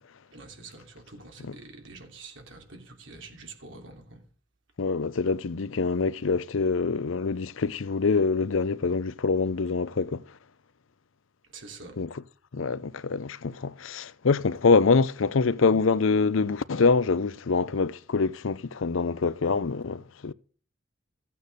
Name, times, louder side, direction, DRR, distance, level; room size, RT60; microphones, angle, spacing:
voice 1, 0.3-4.2 11.5-12.0, right 3 dB, 65° right, 3.1 m, -46 dB
voice 2, 4.8-10.2 12.0-12.1 12.5-20.3, left 4 dB, 75° left, 0.6 m, -25 dB
14.5 x 8.7 x 6.7 m
head